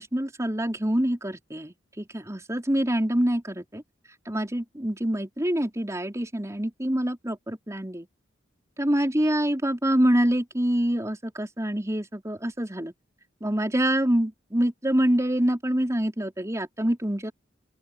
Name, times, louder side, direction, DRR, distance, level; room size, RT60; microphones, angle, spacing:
voice 1, 0.0-3.8 4.3-8.1 8.8-12.9 13.4-17.3, right 1 dB, 15° right, 4.5 m, -26 dB
open air
head